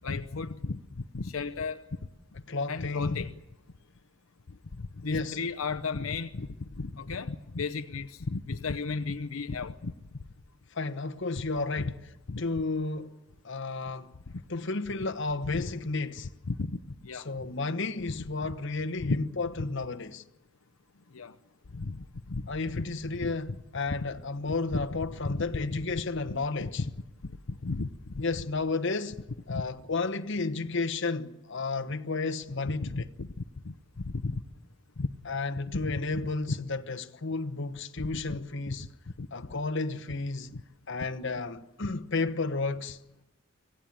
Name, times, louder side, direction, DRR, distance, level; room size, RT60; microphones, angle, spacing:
voice 1, 0.0-1.8 2.7-3.3 4.7-9.9 11.8-11.9 12.3-12.4 15.5-15.7 16.5-17.3 18.2-18.3 19.0-19.2 19.6-19.7 21.1-21.3 21.7-22.5 22.7-22.8 23.2-23.3 23.9-24.1 24.7-24.9 25.2-25.8 26.3-26.9 27.2-27.9 28.1-28.2 29.5-29.6 32.6-34.4 35.0-35.1 35.7-36.6 38.1-38.4 38.7-38.8 39.2-39.3 40.5-40.6, left 3 dB, 85° left, 0.8 m, -34 dB
voice 2, 2.5-3.2 5.0-5.4 10.7-11.9 12.4-13.1 13.4-14.1 14.5-16.3 17.1-20.2 22.5-26.8 28.2-29.2 29.5-33.0 35.3-38.9 39.3-40.5 40.9-43.0, left 3 dB, 60° left, 1.1 m, -32 dB
25.5 x 16.5 x 8.8 m
head